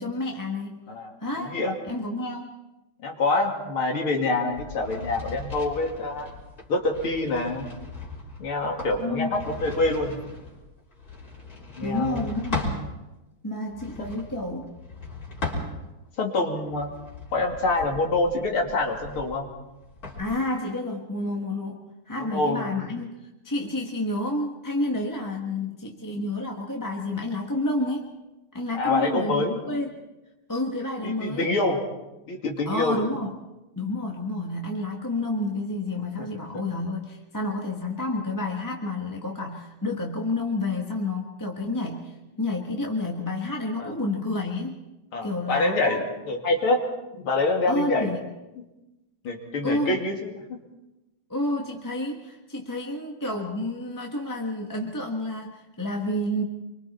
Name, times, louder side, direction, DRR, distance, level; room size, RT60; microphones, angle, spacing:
voice 1, 0.0-0.9 1.2-1.6 1.9-2.5 9.0-9.3 11.8-12.9 13.4-14.7 20.2-23.1 23.4-28.1 28.5-29.9 30.5-31.5 32.6-33.4 33.7-44.8 45.2-46.0 47.7-48.2 49.6-50.0 51.3-56.4, left 2 dB, 10° left, 0 dB, 1.2 m, -30 dB
voice 2, 1.4-1.7 3.0-6.3 6.7-7.7 8.4-10.2 11.8-12.2 14.0-14.2 16.2-16.9 17.3-19.5 22.2-22.7 28.7-29.6 31.0-31.8 32.3-33.0 36.2-36.3 43.8-43.9 45.1-46.8 47.1-48.1 49.2-50.6, left 2 dB, 85° left, 1 dB, 3.4 m, -26 dB
sound 1, 4.5-12.8 13.6-16.1 16.6-20.2, left 3 dB, 40° left, 4.3 m, -37 dB
26.0 x 24.0 x 4.3 m, 1.0 s
omnidirectional pair, 2.3 m